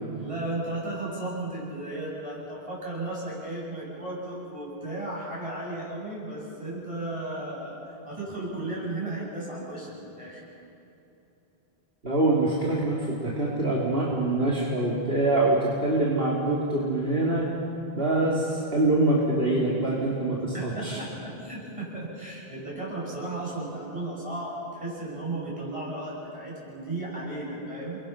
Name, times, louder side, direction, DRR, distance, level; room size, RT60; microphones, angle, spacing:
voice 1, 0.2-10.4 20.5-28.0, right 2 dB, 30° right, -5 dB, 8.1 m, -35 dB
voice 2, 12.0-17.5 18.0-21.0, right 2 dB, 65° right, -5 dB, 3.1 m, -24 dB
29.5 x 23.0 x 5.9 m, 2.9 s
omnidirectional pair, 1.1 m